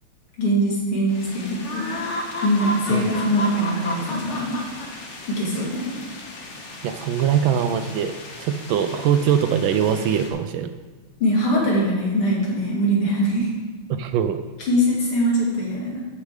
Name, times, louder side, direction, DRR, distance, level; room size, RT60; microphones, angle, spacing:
voice 1, 0.4-2.0 2.4-4.6 5.3-5.9 11.2-13.5 14.6-16.0, equal, 80° left, -4 dB, 3.5 m, -22 dB
sound 1, 1.1-10.3, left 1 dB, 40° left, 1.1 m, -34 dB
voice 2, 6.8-8.1 8.4-10.7 13.9-14.4, right 8 dB, 75° right, 9 dB, 1.3 m, -22 dB
12.5 x 5.2 x 4.9 m, 1.3 s
omnidirectional pair, 2.4 m